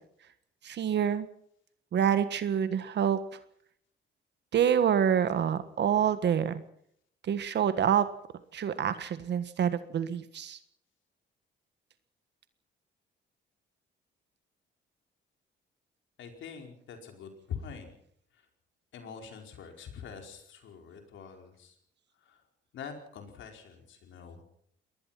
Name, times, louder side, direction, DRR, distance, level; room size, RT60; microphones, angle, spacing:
voice 1, 0.6-1.3 1.9-3.2 4.5-6.6 7.2-8.1 8.5-10.6, right 8 dB, 60° right, 12 dB, 1.5 m, -27 dB
voice 2, 16.2-17.9 18.3-18.5 18.9-21.8 22.2-22.4 22.7-24.4, left 7 dB, 75° left, 4 dB, 4.8 m, -44 dB
22.5 x 19.5 x 5.9 m, 0.66 s
cardioid pair, 90°, 20 cm